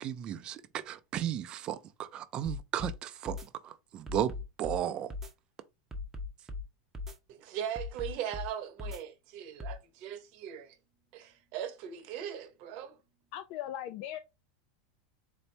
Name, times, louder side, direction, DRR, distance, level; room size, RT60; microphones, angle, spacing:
voice 1, 0.0-3.4 3.6-5.1, right 10 dB, 35° right, 0.4 m, -35 dB
sound 1, 2.4-2.9 3.2-3.5 4.1-4.8 5.1-5.3 5.9-6.6 6.9-7.2 7.7-8.5 8.8-9.0 9.6-9.8, left 3 dB, 15° right, 0.8 m, -38 dB
voice 2, 7.3-10.8 11.1-13.0, right 10 dB, 50° right, 0.9 m, -39 dB
voice 3, 13.3-14.2, left 12 dB, 55° left, 0.4 m, -38 dB
4.1 x 2.6 x 3.3 m
supercardioid pair, 130°, 3 cm